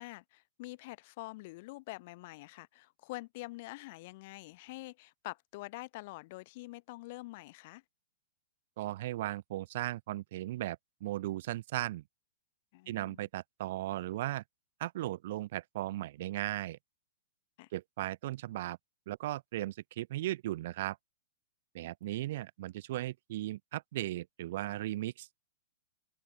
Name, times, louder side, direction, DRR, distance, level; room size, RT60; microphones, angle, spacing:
voice 1, 0.0-7.8 12.7-13.3 17.6-17.7, left 21 dB, 50° left, 1.1 m, -46 dB
voice 2, 8.8-12.0 12.9-14.4 14.8-16.8 17.7-18.8 19.1-21.0 21.7-25.4, right 15 dB, 55° right, 0.8 m, -37 dB
open air
hypercardioid pair, 140°, 0 cm